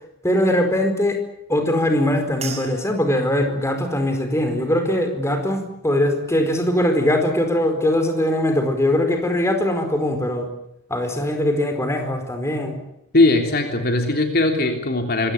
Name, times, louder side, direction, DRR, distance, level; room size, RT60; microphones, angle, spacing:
voice 1, 0.2-1.2 1.5-10.5 10.9-12.8, left 1 dB, 15° left, 6 dB, 4.7 m, -21 dB
sound 1, 2.4-6.9 7.3-7.9 8.5-8.7, right 4 dB, 30° right, 6.0 m, -41 dB
voice 2, 13.1-15.3, left 2 dB, 45° left, 4 dB, 3.3 m, -19 dB
26.0 x 23.0 x 8.6 m, 0.78 s
head